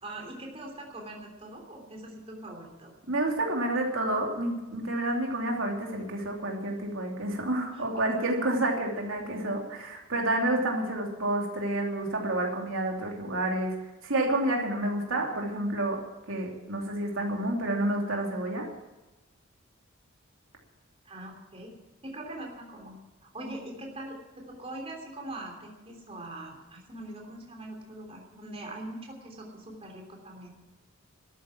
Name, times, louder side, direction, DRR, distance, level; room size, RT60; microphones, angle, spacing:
voice 1, 0.0-2.9 7.7-8.1 21.0-21.7 22.0-23.0 23.2-30.5, right 1 dB, 30° right, 1 dB, 3.2 m, -42 dB
voice 2, 3.1-13.7 14.0-16.0 16.3-18.7, right 1 dB, 85° right, 0 dB, 2.8 m, -29 dB
13.0 x 9.5 x 9.0 m, 1.1 s
head